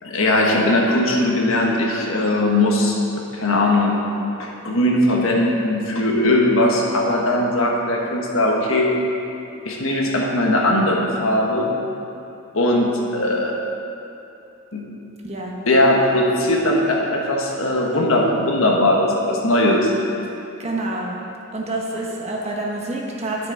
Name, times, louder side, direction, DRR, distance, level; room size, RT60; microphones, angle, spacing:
voice 1, 0.0-3.0 3.3-3.9 4.4-8.9 9.6-11.7 12.5-13.5 14.7-14.9 15.7-19.9, left 1 dB, 70° left, -1 dB, 1.4 m, -19 dB
voice 2, 15.2-15.5 20.6-21.1 21.5-23.5, right 2 dB, 30° right, -2 dB, 1.1 m, -27 dB
11.0 x 6.7 x 4.8 m, 2.7 s
head